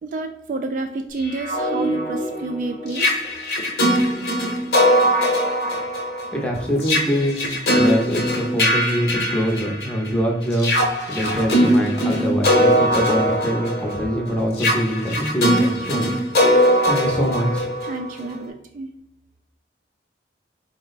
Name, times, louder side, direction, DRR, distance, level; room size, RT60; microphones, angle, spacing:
voice 1, 0.0-3.1 17.8-18.9, right 3 dB, 45° right, 5 dB, 0.3 m, -29 dB
sound 1, 1.2-10.1 10.5-18.3, equal, 55° left, 0.9 m, -21 dB
voice 2, 6.3-10.7 11.1-16.1 16.4-17.7, equal, 5° left, -1 dB, 0.6 m, -24 dB
4.4 x 2.1 x 3.9 m, 0.80 s
head